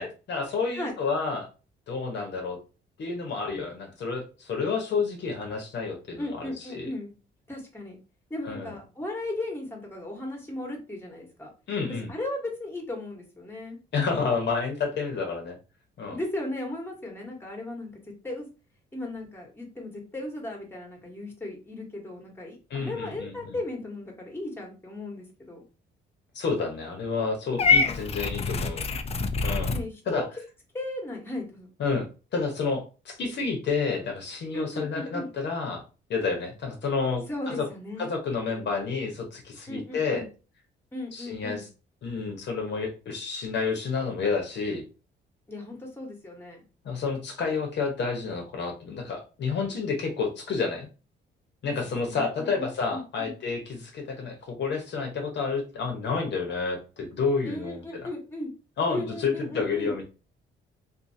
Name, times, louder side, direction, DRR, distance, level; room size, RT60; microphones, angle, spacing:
voice 1, 0.0-1.5 1.9-2.6 3.0-6.9 8.4-8.7 11.7-12.1 13.9-15.6 16.0-16.2 22.7-23.6 26.3-28.8 29.4-29.7 30.1-30.2 31.8-35.8 36.1-37.7 38.0-40.2 41.1-41.6 42.0-44.8 46.8-50.9 51.6-58.1 58.8-60.0, left 4 dB, 60° left, 2 dB, 0.9 m, -30 dB
voice 2, 6.2-7.1 7.5-8.0 8.3-11.5 12.1-13.8 16.1-18.5 18.9-25.6 29.7-30.3 30.7-31.7 34.5-35.3 37.3-38.1 39.7-40.3 40.9-41.7 45.5-46.6 52.1-53.3 57.4-58.5 58.9-59.9, left 1 dB, 10° left, 1 dB, 1.1 m, -36 dB
Purr / Meow, 27.6-29.8, left 4 dB, 30° left, 0.4 m, -25 dB
2.6 x 2.5 x 2.6 m, 0.32 s
cardioid pair, 90°, 20 cm